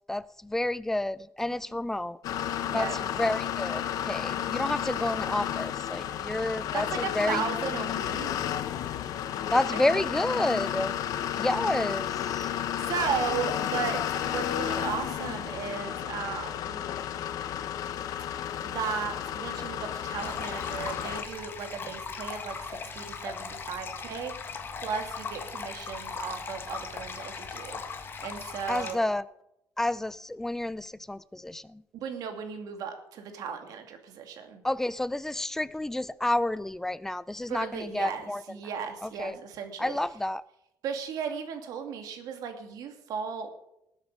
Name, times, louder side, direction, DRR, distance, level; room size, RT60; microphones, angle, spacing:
voice 1, 0.1-2.2 2.7-7.4 9.5-10.9 11.4-12.5 28.7-29.2 29.8-31.8 34.6-38.4 39.0-39.4 39.8-40.4, left 1 dB, 5° left, 0.4 m, -30 dB
sound 1, 2.2-21.2, left 10 dB, 65° left, 0.9 m, -32 dB
voice 2, 2.6-3.0 6.7-8.3 9.7-9.9 12.5-16.8 18.6-29.0 31.9-34.6 37.5-40.0 40.8-43.5, right 6 dB, 70° right, 2.4 m, -36 dB
sound 2, 20.2-28.9, left 5 dB, 35° left, 1.5 m, -39 dB
19.5 x 8.1 x 5.4 m
cardioid pair, 155°, 7 cm